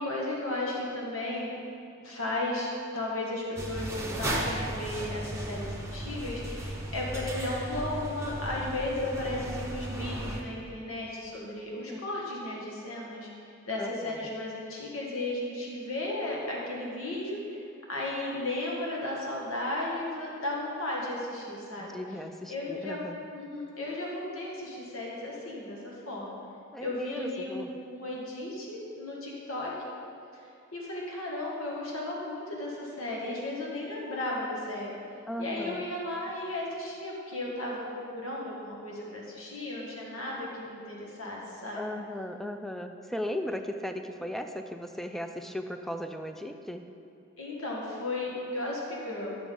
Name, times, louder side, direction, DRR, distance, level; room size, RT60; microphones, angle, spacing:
voice 1, 0.0-1.5 2.0-13.3 13.7-17.6 17.9-22.0 22.5-23.0 23.3-26.4 26.8-29.7 30.3-30.4 30.7-34.9 35.4-37.9 38.1-41.8 47.4-49.4, left 1 dB, 80° left, -4 dB, 1.6 m, -35 dB
sound 1, 3.6-10.4, right 1 dB, 15° right, 0.9 m, -36 dB
voice 2, 13.8-14.3 21.8-23.2 26.7-27.7 35.3-35.8 41.8-46.8, left 1 dB, ahead, 6 dB, 0.4 m, -37 dB
11.0 x 6.0 x 3.7 m, 2.6 s
head